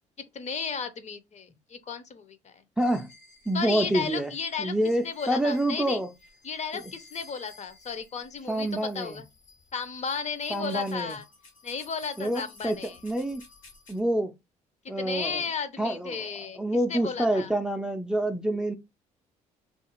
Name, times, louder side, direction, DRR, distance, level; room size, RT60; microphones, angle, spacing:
voice 1, 0.3-2.6 3.5-4.7 5.0-6.0 6.4-8.7 8.9-9.3 9.7-11.2 11.6-13.0 14.8-16.6 16.9-17.5, left 6 dB, 40° left, 0.6 m, -34 dB
sound 1, 2.8-14.0, left 3 dB, 85° left, 1.1 m, -54 dB
voice 2, 2.8-3.1 3.5-4.3 4.6-6.1 6.7-6.8 8.5-9.2 10.5-11.2 12.2-13.4 13.9-14.3 14.9-15.4 15.8-18.8, right 1 dB, 5° right, 0.4 m, -27 dB
2.4 x 2.4 x 2.9 m
hypercardioid pair, 55°, 18 cm